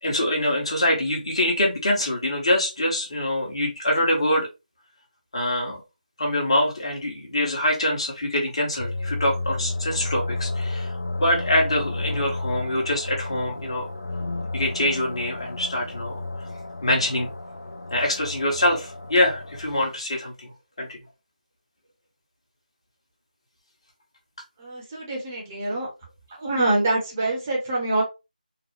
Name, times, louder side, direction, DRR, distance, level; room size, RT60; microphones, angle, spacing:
voice 1, 0.0-4.5 5.3-5.8 6.2-10.9 11.2-13.9 14.5-16.2 16.8-17.3 17.9-20.5 20.8-21.0, left 1 dB, 40° left, -1 dB, 1.3 m, -24 dB
sound 1, 8.8-19.9, left 2 dB, 55° left, 0.5 m, -32 dB
voice 2, 24.6-25.9 26.4-28.0, right 2 dB, 15° right, -3 dB, 0.9 m, -25 dB
3.9 x 2.1 x 3.1 m, 0.26 s
figure-of-eight pair, 165°, 5 cm